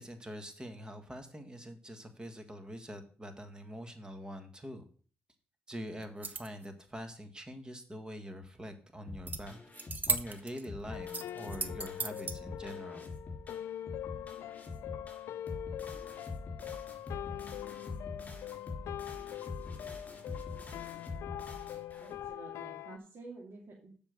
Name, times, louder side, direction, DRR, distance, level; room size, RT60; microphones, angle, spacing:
voice 1, 0.0-4.8 5.7-9.6 10.1-13.1, equal, 20° right, 7 dB, 1.6 m, -44 dB
sound 1, 6.0-6.7 9.3-9.4 9.7-10.7 11.1-12.4, right 4 dB, 40° right, 0.9 m, -35 dB
sound 2, 9.1-22.3, left 3 dB, 35° left, 3.5 m, -45 dB
sound 3, 10.9-23.0, left 11 dB, 85° left, 0.4 m, -43 dB
voice 2, 22.0-23.9, right 3 dB, 55° right, -3 dB, 2.3 m, -50 dB
7.3 x 5.2 x 6.7 m, 0.43 s
cardioid pair, 80°, 5 cm